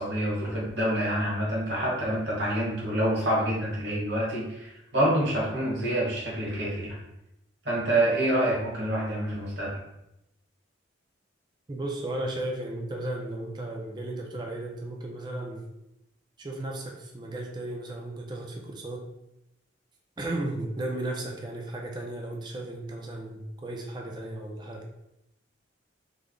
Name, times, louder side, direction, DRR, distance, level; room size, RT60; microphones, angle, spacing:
voice 1, 0.0-7.0 7.6-9.7, right 1 dB, 60° right, -5 dB, 1.2 m, -27 dB
voice 2, 11.7-15.6 16.4-19.1 20.2-24.8, right 1 dB, 20° right, 1 dB, 0.4 m, -35 dB
3.3 x 2.0 x 3.6 m, 0.87 s
head